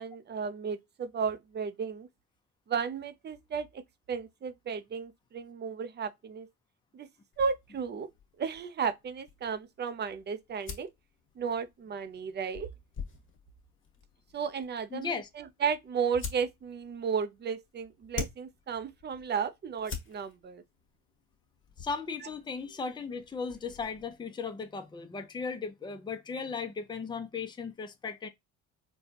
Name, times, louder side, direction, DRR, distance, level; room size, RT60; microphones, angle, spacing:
voice 1, 0.0-2.1 2.7-6.5 6.9-7.1 7.4-8.1 8.4-10.9 11.4-12.7 14.3-20.6, right 6 dB, 35° right, 0.5 m, -34 dB
sound 1, 7.3-24.2, left 6 dB, 40° left, 1.5 m, -47 dB
voice 2, 14.9-15.3 21.8-28.3, left 5 dB, 15° left, 0.6 m, -36 dB
4.0 x 2.3 x 2.8 m
cardioid pair, 100°, 30 cm